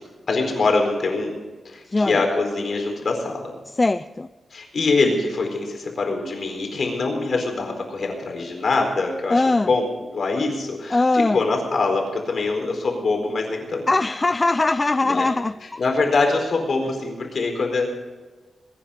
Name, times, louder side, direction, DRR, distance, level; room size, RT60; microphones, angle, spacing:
voice 1, 0.3-1.4 1.6-3.5 4.5-9.8 10.1-13.9 15.0-15.2 15.8-17.9, left 3 dB, 55° left, 2 dB, 4.4 m, -23 dB
voice 2, 1.8-2.2 3.7-4.3 9.3-9.7 10.9-11.4 13.9-15.8, left 2 dB, 25° left, 12 dB, 0.4 m, -21 dB
22.0 x 10.0 x 5.1 m, 1.3 s
wide cardioid pair, 125°, 0 cm